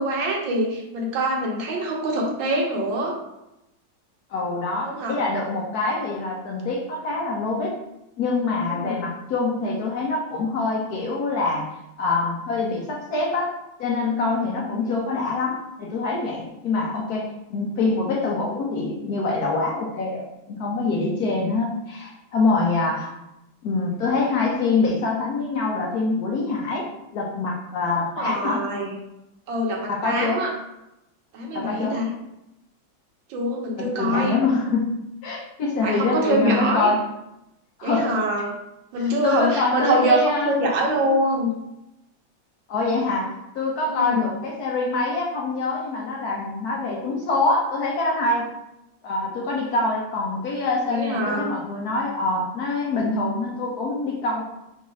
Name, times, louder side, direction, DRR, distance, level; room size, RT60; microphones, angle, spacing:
voice 1, 0.0-3.1 4.8-5.2 8.7-9.1 14.7-15.0 27.9-28.9 29.5-30.5 31.3-32.1 33.3-34.4 35.8-36.9 37.8-38.5 38.9-41.6 43.9-44.3 50.9-51.5, right 1 dB, 70° right, 0 dB, 1.7 m, -24 dB
voice 2, 4.3-7.8 8.2-11.7 12.0-13.5 13.8-23.1 23.6-26.9 27.1-28.6 29.9-30.4 31.5-32.0 33.8-34.9 35.2-37.0 37.8-38.1 39.0-40.5 42.7-43.3 43.5-48.5 49.0-54.4, left 3 dB, 65° left, -2 dB, 1.0 m, -25 dB
4.0 x 2.7 x 4.7 m, 0.88 s
omnidirectional pair, 2.2 m